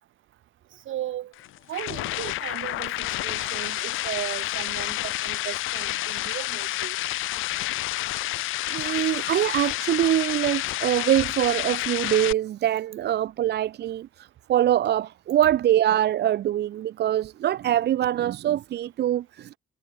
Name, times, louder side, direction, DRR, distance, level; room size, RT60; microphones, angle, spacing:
voice 1, 0.9-1.3 1.7-7.0, right 13 dB, 80° right, 6.3 m, -36 dB
sound 1, 1.3-12.3, left 16 dB, 90° left, 1.2 m, -29 dB
voice 2, 8.4-19.5, right 12 dB, 60° right, 0.5 m, -24 dB
cardioid pair, 90°, 20 cm